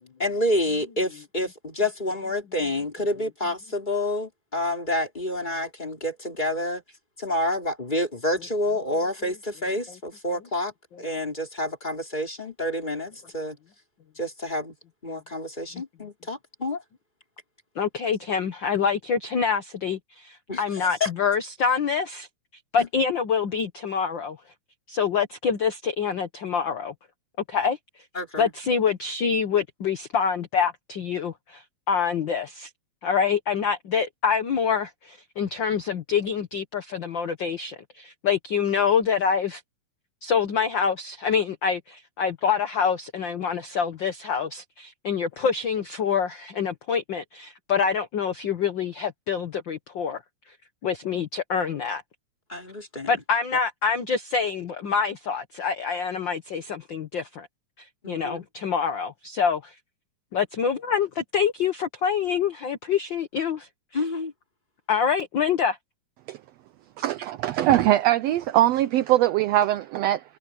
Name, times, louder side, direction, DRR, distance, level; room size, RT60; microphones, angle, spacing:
voice 1, 0.2-6.8 7.2-10.7 11.0-13.6 14.2-14.8 15.0-16.8 20.5-21.1 22.8-22.9 28.2-28.5 52.5-53.1 58.0-58.5 63.9-64.3, left 1 dB, 15° left, 3.4 m, -28 dB
voice 2, 17.7-22.3 22.7-24.4 24.9-26.9 27.5-27.8 28.4-32.7 33.0-39.6 40.2-50.2 50.8-52.0 53.1-57.5 57.8-59.7 60.3-63.7 64.9-65.8, left 6 dB, 55° left, 1.3 m, -26 dB
voice 3, 67.0-70.2, right 13 dB, 80° right, 1.5 m, -21 dB
omnidirectional pair, 3.5 m